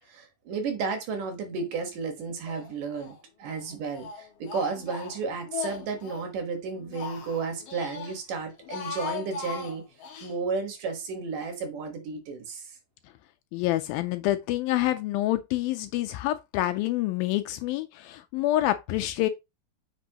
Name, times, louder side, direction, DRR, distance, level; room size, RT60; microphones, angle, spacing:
voice 1, 0.1-3.1 3.4-9.8 10.2-12.7, right 4 dB, 65° right, 2.7 m, -33 dB
Speech, 2.5-3.2 3.5-6.3 6.7-8.2 8.5-10.3, left 7 dB, 60° left, 1.6 m, -39 dB
voice 2, 13.5-19.3, left 15 dB, 80° left, 2.2 m, -27 dB
8.4 x 5.3 x 2.8 m
omnidirectional pair, 4.5 m